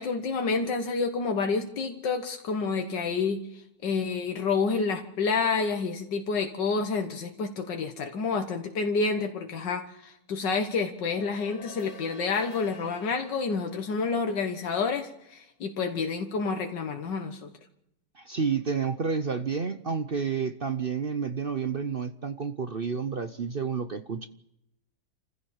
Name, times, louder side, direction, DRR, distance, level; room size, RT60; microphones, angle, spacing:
voice 1, 0.0-17.5, left 4 dB, 85° left, 5 dB, 2.0 m, -29 dB
sound 1, 10.9-15.5, left 3 dB, 55° left, 2.3 m, -49 dB
voice 2, 18.2-24.3, right 5 dB, 45° right, 10 dB, 0.8 m, -30 dB
28.0 x 15.0 x 7.2 m, 0.82 s
omnidirectional pair, 1.9 m